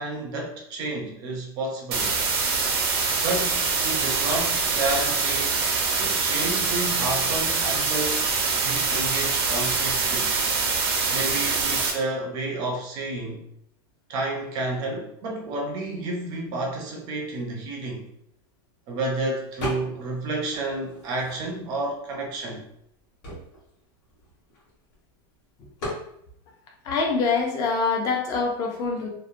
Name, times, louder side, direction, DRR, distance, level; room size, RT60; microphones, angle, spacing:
voice 1, 0.0-2.1 3.2-5.6 6.0-8.2 8.6-10.3 11.1-13.4 14.1-18.1 18.9-22.6, right 2 dB, 30° right, 1 dB, 0.4 m, -30 dB
sound 1, 1.9-11.9, right 4 dB, 90° right, 0.7 m, -24 dB
sound 2, 19.6-20.2 20.5-21.8 22.4-22.5 22.7-25.0 25.8-26.1, left 1 dB, 45° left, 1.2 m, -36 dB
voice 2, 26.8-29.1, left 4 dB, 25° left, 1 dB, 0.4 m, -24 dB
2.8 x 2.0 x 2.4 m, 0.72 s
supercardioid pair, 170°, 13 cm